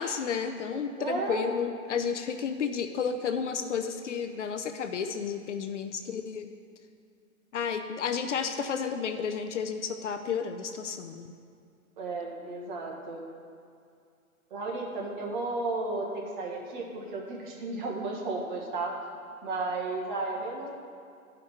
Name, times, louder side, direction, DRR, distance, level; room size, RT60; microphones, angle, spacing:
voice 1, 0.0-6.5 7.5-11.3, left 6 dB, 55° left, 7 dB, 0.6 m, -32 dB
voice 2, 1.0-1.5 12.0-13.2 14.5-18.9 19.4-20.7, right 3 dB, 30° right, -1 dB, 1.4 m, -33 dB
12.5 x 5.2 x 4.3 m, 2.3 s
hypercardioid pair, 155°, 43 cm